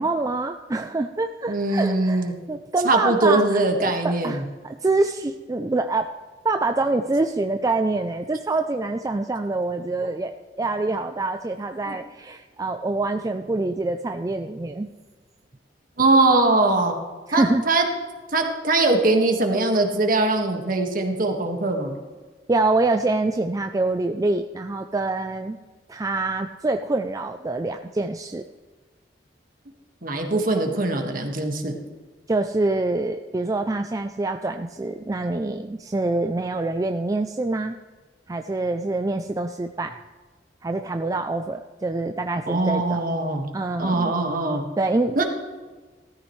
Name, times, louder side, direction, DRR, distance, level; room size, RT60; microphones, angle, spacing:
voice 1, 0.0-6.1 6.4-10.3 10.6-14.9 17.3-17.6 22.5-25.6 25.9-28.4 32.3-37.8 38.3-39.9 40.6-43.0 43.5-44.1 44.8-45.2, right 2 dB, 20° right, 7 dB, 0.4 m, -25 dB
voice 2, 1.5-2.3 2.8-4.4 11.9-12.0 16.0-17.0 17.3-17.8 18.3-22.0 30.0-31.7 42.5-43.5 43.8-44.6 45.1-45.2, right 2 dB, 50° right, 3 dB, 1.7 m, -21 dB
16.0 x 14.0 x 3.2 m, 1.3 s
head